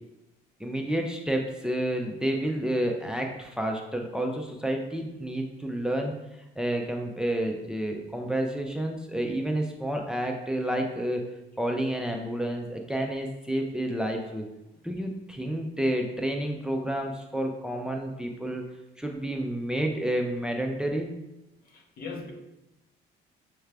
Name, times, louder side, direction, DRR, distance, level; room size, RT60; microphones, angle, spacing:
voice 1, 0.6-6.1 6.6-11.3 11.6-14.5 14.8-18.6 19.0-21.1, right 1 dB, 5° right, 2 dB, 0.4 m, -30 dB
voice 2, 21.7-22.3, left 4 dB, 65° left, 2 dB, 0.8 m, -39 dB
5.7 x 2.3 x 3.3 m, 0.95 s
cardioid pair, 110°, 17 cm